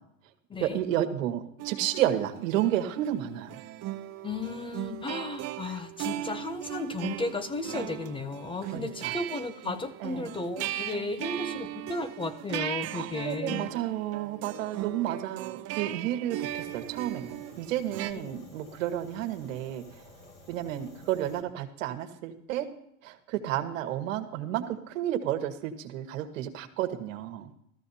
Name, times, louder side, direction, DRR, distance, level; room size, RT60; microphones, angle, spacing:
voice 1, 0.6-3.6 8.6-9.2 10.0-10.3 12.9-20.0 20.5-22.7 23.0-27.5, right 12 dB, 80° right, 6 dB, 1.5 m, -31 dB
sound 1, 1.6-18.1, right 14 dB, 40° right, 0.7 m, -38 dB
voice 2, 4.2-13.7, left 3 dB, 15° left, 12 dB, 0.5 m, -34 dB
Fire, 16.4-21.4, left 2 dB, 40° left, 2.3 m, -53 dB
15.0 x 14.0 x 2.8 m, 0.77 s
supercardioid pair, 130°, 38 cm